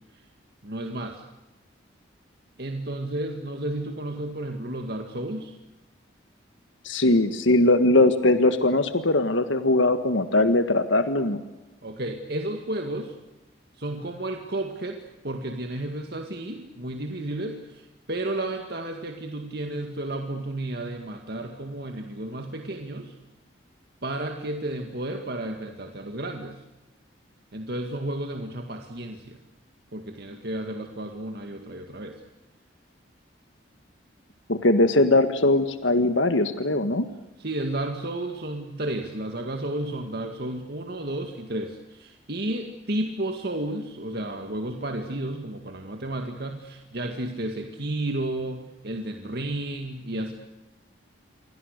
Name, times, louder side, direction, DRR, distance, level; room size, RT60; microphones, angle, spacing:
voice 1, 0.6-1.2 2.6-5.6 11.8-13.2 13.7-23.1 24.0-26.6 27.5-29.4 29.9-32.2 37.4-50.3, right 1 dB, 55° right, 4 dB, 2.0 m, -32 dB
voice 2, 6.9-11.4 34.5-37.1, left 2 dB, 80° left, 9 dB, 1.6 m, -20 dB
28.5 x 24.0 x 6.7 m, 1.1 s
head